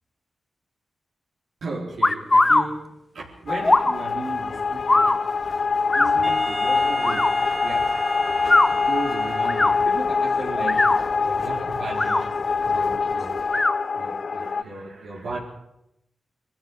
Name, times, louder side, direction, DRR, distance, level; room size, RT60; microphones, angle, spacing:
voice 1, 1.6-5.3 5.6-7.9 8.7-12.3 12.6-13.4 13.9-15.4, right 3 dB, 85° right, -3 dB, 4.3 m, -35 dB
sound 1, 2.0-2.6 3.6-3.9 4.9-5.2 5.9-6.1 7.0-7.3 8.4-8.7 9.4-9.7 10.6-11.0 11.9-12.2 13.5-13.7, left 2 dB, 30° left, 1.2 m, -19 dB
sound 2, 3.5-14.6, left 5 dB, 60° left, 0.8 m, -25 dB
Wind instrument woodwind instrument, 6.2-10.1, right 1 dB, 10° right, 1.3 m, -32 dB
22.0 x 13.5 x 9.6 m, 0.82 s
cardioid pair, 80°, 0 cm